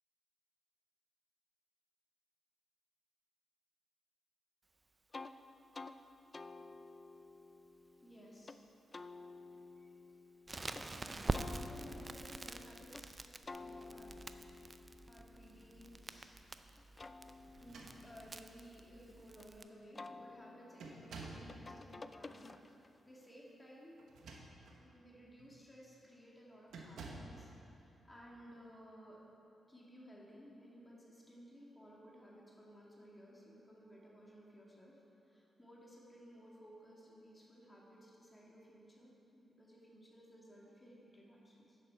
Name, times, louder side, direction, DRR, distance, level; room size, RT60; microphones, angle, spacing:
sound 1, 5.1-5.3 5.7-6.0 6.3-8.6 8.9-10.9 11.3-13.1 13.5-16.3 16.8-19.4 20.0-23.0, left 3 dB, 35° left, 0.4 m, -52 dB
voice 1, 8.0-8.6 9.7-9.9 10.7-14.3 15.1-16.4 17.6-24.1 24.8-29.3 29.7-41.8, equal, 15° left, -4 dB, 2.0 m, -58 dB
Crackle, 10.5-19.6, right 2 dB, 30° right, 0.4 m, -46 dB
sound 2, 17.5-18.4 19.3-19.4 19.8-20.1 20.8-21.5 24.0-24.8 25.4-25.6 26.7-27.4, right 3 dB, 80° right, 1.0 m, -51 dB
10.5 x 7.4 x 4.5 m, 2.9 s
cardioid pair, 70°, 0 cm